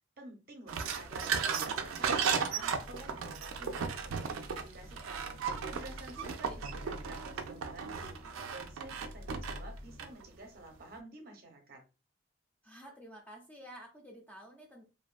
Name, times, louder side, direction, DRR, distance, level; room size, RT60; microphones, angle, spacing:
voice 1, 0.2-5.3 5.7-8.2 8.5-11.8, right 2 dB, 45° right, 3 dB, 0.6 m, -51 dB
sound 1, 0.7-10.2, right 6 dB, 90° right, 0.3 m, -35 dB
sound 2, 2.8-10.1, left 1 dB, 60° left, 0.5 m, -50 dB
voice 2, 6.2-6.6 12.6-14.8, equal, 10° left, -1 dB, 0.4 m, -51 dB
2.5 x 2.3 x 2.3 m, 0.30 s
head